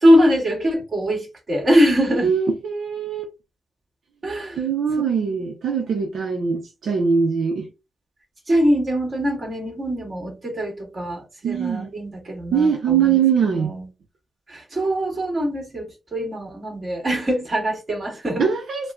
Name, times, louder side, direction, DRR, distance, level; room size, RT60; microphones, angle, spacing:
voice 1, 0.0-2.3 4.2-4.6 8.5-13.2 13.5-13.9 14.5-18.5, equal, 35° right, 2.0 m, -22 dB
voice 2, 2.2-3.3 4.6-7.7 11.4-11.9 12.5-13.7 18.4-18.9, right 6 dB, 85° right, 0.7 m, -22 dB
5.3 x 2.3 x 2.5 m
wide cardioid pair, 140°, 0 cm